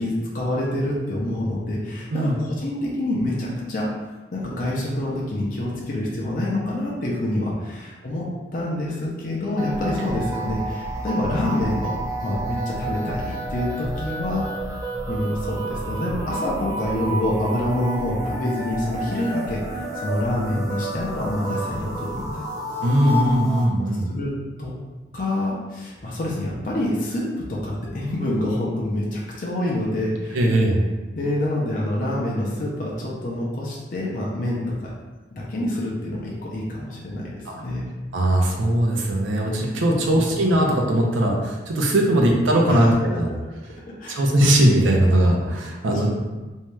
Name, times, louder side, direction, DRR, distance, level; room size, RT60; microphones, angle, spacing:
voice 1, 0.0-3.9 4.3-8.3 8.5-11.9 12.2-14.5 15.1-22.4 24.1-24.3 24.6-24.7 25.1-30.4 31.1-34.9 35.4-37.8 39.9-40.2 44.0-44.2 45.9-46.1, left 1 dB, 45° left, -5 dB, 0.5 m, -26 dB
sound 1, 9.6-23.7, right 2 dB, 20° right, 0.3 m, -30 dB
voice 2, 22.8-24.1 30.3-30.8 37.5-37.6 38.1-43.3 44.1-46.1, right 1 dB, 90° right, 0 dB, 0.5 m, -19 dB
2.7 x 2.2 x 3.1 m, 1.2 s
head